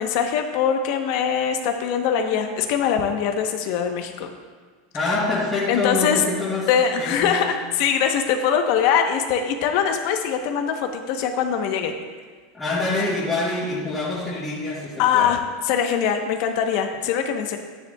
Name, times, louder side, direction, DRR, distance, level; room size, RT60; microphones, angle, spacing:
voice 1, 0.0-4.3 5.0-5.1 5.7-6.2 6.7-12.0 15.0-17.6, left 7 dB, 60° left, 5 dB, 0.9 m, -22 dB
voice 2, 4.9-6.7 7.0-7.4 12.5-15.3, left 2 dB, 10° left, -9 dB, 2.3 m, -25 dB
10.0 x 9.8 x 2.3 m, 1.5 s
supercardioid pair, 130°, 0 cm